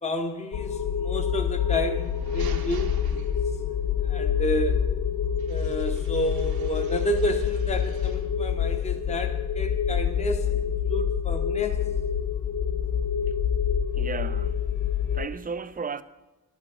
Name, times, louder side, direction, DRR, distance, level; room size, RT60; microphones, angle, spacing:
voice 1, 0.0-3.2 4.0-4.9 5.5-11.8, equal, 20° left, 0.8 m, -31 dB
sound 1, 0.5-15.3, left 8 dB, 55° left, 0.7 m, -27 dB
sound 2, 1.9-3.8 5.4-8.4, right 7 dB, 85° right, 1.0 m, -48 dB
voice 2, 13.9-14.6 15.1-16.0, right 5 dB, 25° right, 0.4 m, -34 dB
11.0 x 6.2 x 6.6 m
cardioid pair, 95°, 36 cm